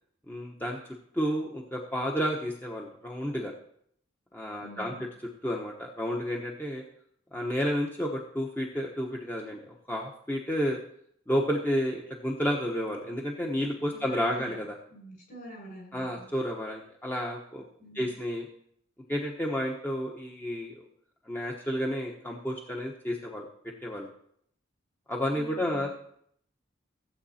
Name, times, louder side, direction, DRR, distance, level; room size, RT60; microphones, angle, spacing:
voice 1, 0.3-0.8 1.1-3.5 4.3-4.9 5.4-6.8 7.3-10.8 11.3-14.7 15.9-17.6 17.9-18.5 19.1-20.8 21.3-23.4 23.8-24.1 25.1-25.9, equal, 10° left, -1 dB, 1.0 m, -31 dB
voice 2, 4.6-5.1 13.9-14.6 14.9-16.3 17.8-18.2 25.3-25.9, right 1 dB, 50° left, -1 dB, 6.4 m, -46 dB
15.5 x 8.0 x 4.3 m, 0.68 s
head